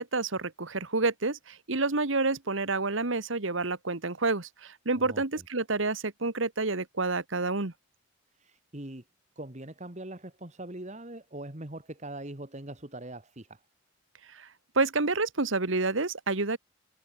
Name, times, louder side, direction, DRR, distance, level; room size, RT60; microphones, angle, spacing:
voice 1, 0.0-7.7 14.3-14.5 14.7-16.6, right 3 dB, 70° right, 1.7 m, -29 dB
voice 2, 8.4-9.0 9.4-13.6, right 1 dB, 35° right, 2.2 m, -42 dB
head